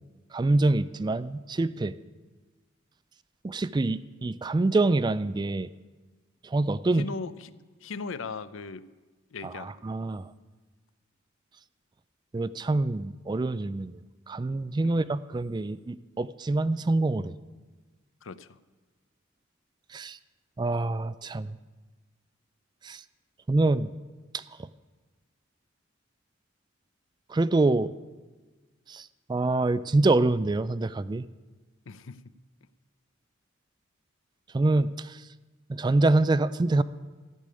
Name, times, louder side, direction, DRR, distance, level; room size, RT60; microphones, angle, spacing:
voice 1, 0.3-2.0 3.4-5.7 6.4-7.1 9.4-10.3 12.3-14.0 14.3-17.3 19.9-20.2 20.6-21.6 22.8-23.0 23.5-23.9 24.3-24.7 27.3-27.9 28.9-31.3 34.5-35.2 35.7-36.8, right 2 dB, 20° right, 16 dB, 0.3 m, -26 dB
voice 2, 6.9-7.5 7.8-8.9 9.3-9.8 14.8-14.9 18.2-18.6 31.9-32.3, left 4 dB, 75° left, 15 dB, 0.6 m, -38 dB
14.0 x 6.8 x 9.7 m, 1.3 s
head